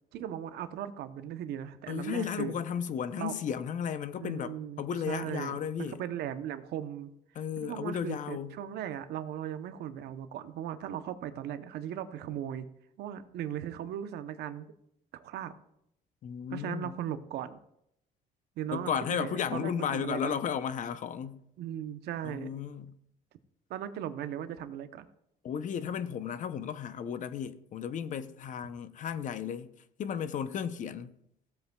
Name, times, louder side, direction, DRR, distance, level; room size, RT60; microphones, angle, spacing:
voice 1, 0.1-2.5 3.2-3.3 4.2-7.1 7.6-12.7 13.0-14.7 15.1-15.5 16.5-17.6 18.6-20.4 21.6-22.5 23.7-25.1, right 10 dB, 75° right, 0.8 m, -38 dB
voice 2, 1.9-6.0 7.3-8.6 16.2-16.9 18.7-21.4 22.2-23.0 25.4-29.7 30.0-31.1, left 8 dB, 50° left, 0.6 m, -34 dB
16.5 x 7.9 x 2.3 m
cardioid pair, 110°, 17 cm